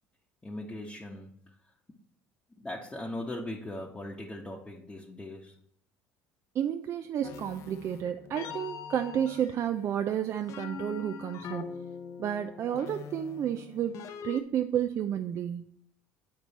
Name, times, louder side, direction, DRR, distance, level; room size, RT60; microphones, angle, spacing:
voice 1, 0.4-1.5 2.6-5.5, left 1 dB, 15° left, -2 dB, 1.0 m, -39 dB
voice 2, 6.5-11.7 12.2-15.6, right 9 dB, 50° right, 8 dB, 0.4 m, -31 dB
sound 1, 7.2-14.4, left 6 dB, 55° left, 0.7 m, -43 dB
8.7 x 4.5 x 4.1 m, 0.69 s
hypercardioid pair, 80°, 6 cm